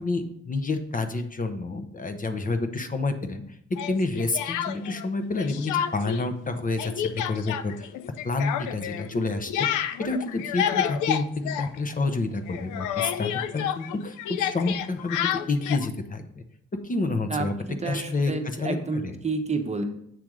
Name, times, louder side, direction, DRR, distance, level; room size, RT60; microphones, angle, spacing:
voice 1, 0.0-3.4 3.9-7.9 8.2-9.7 10.0-16.4 16.8-17.5 17.8-19.1, left 3 dB, 25° left, 8 dB, 0.8 m, -29 dB
Speech, 3.8-5.1 5.4-6.2 6.5-12.2 12.5-15.9, left 10 dB, 80° left, 0.5 m, -30 dB
voice 2, 17.3-19.8, right 3 dB, 20° right, 5 dB, 1.0 m, -30 dB
7.6 x 3.4 x 6.1 m, 0.73 s
cardioid pair, 90°, 30 cm